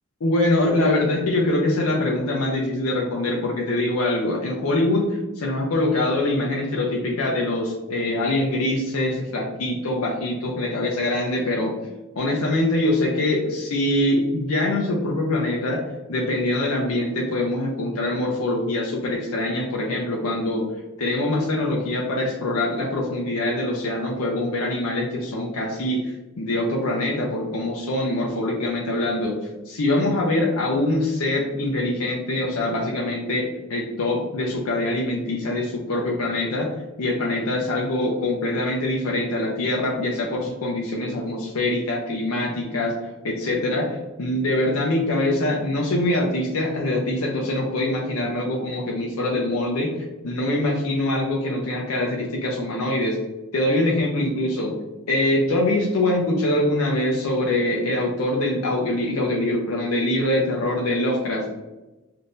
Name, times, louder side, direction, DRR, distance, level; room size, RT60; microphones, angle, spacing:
voice 1, 0.2-11.7 12.2-15.8 16.1-20.6 21.0-29.4 29.7-36.7 37.0-53.2 53.5-54.7 55.1-61.5, left 1 dB, 85° left, -1 dB, 0.5 m, -24 dB
3.7 x 2.6 x 2.5 m, 1.1 s
head